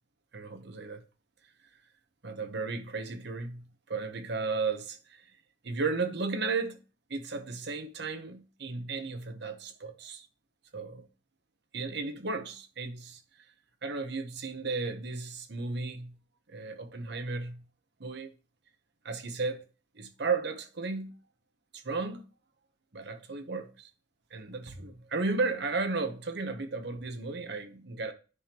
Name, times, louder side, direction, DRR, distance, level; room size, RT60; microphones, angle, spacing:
voice 1, 0.3-1.0 2.2-5.2 5.6-6.8 7.1-10.3 10.7-11.1 11.7-13.2 13.8-16.1 16.5-17.6 18.0-18.3 19.0-19.7 19.9-21.1 21.7-22.2 22.9-23.9 24.3-28.1, right 4 dB, 60° right, 1.0 m, -34 dB
9.7 x 5.3 x 3.0 m
head